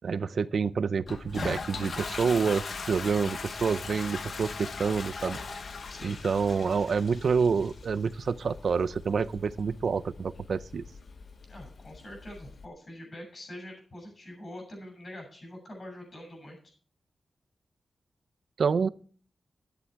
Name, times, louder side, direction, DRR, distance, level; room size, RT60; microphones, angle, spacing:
voice 1, 0.0-5.4 6.0-10.8 18.6-18.9, right 5 dB, 60° right, 17 dB, 0.6 m, -28 dB
Toilet flush, 1.1-12.6, left 4 dB, 55° left, 1.2 m, -40 dB
voice 2, 11.5-16.6, left 1 dB, 35° left, 2 dB, 7.1 m, -44 dB
12.0 x 10.5 x 4.6 m, 0.42 s
wide cardioid pair, 165°, 0 cm